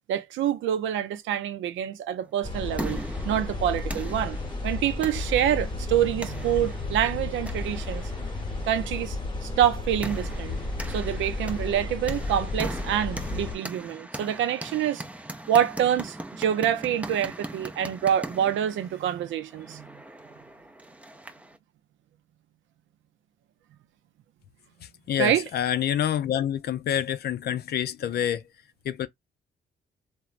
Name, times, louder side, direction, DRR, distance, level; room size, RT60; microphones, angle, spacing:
voice 1, 0.1-3.0 3.2-4.4 4.6-8.0 8.6-9.2 9.4-10.6 10.9-15.0 15.5-19.9 25.2-25.4, right 10 dB, 75° right, 0.5 m, -26 dB
sound 1, 2.3-21.6, right 1 dB, 5° right, 0.5 m, -40 dB
sound 2, 2.4-13.5, left 2 dB, 25° left, 1.0 m, -33 dB
voice 2, 24.8-28.4 28.8-29.1, left 10 dB, 55° left, 0.4 m, -27 dB
3.0 x 2.1 x 2.4 m
cardioid pair, 90°, 20 cm